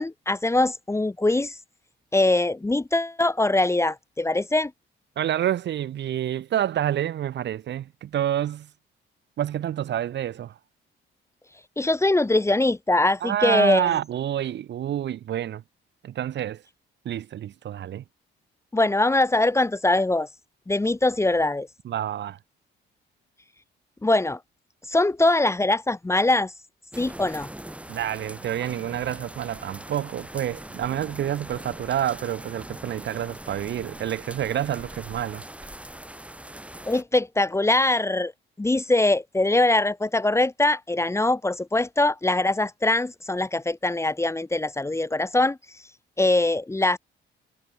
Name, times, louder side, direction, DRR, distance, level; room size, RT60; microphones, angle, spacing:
voice 1, 0.0-1.6 2.1-4.7 11.8-13.9 18.7-20.3 20.7-21.7 24.0-24.4 24.9-26.5 27.0-27.5 36.8-38.3 38.6-45.6 46.2-47.0, left 2 dB, 15° left, 1.0 m, -22 dB
voice 2, 5.2-8.7 9.4-10.6 13.2-15.6 16.0-16.6 17.0-18.0 21.8-22.4 27.9-35.4, right 11 dB, 65° right, 1.1 m, -28 dB
sound 1, 26.9-37.0, right 1 dB, 5° right, 2.5 m, -41 dB
cardioid pair, 90°, 20 cm